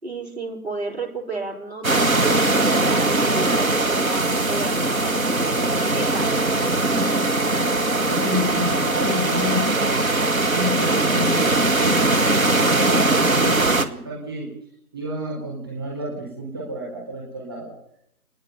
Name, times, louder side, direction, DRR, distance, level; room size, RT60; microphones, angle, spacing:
voice 1, 0.0-2.5 2.8-6.4, right 3 dB, 45° right, 1 dB, 4.6 m, -32 dB
sound 1, 1.8-13.9, right 2 dB, 65° right, 2.0 m, -20 dB
voice 2, 6.9-7.8 8.0-14.5 14.9-17.7, left 1 dB, 15° right, -3 dB, 4.1 m, -30 dB
28.5 x 10.5 x 9.5 m, 0.73 s
figure-of-eight pair, 175°, 43 cm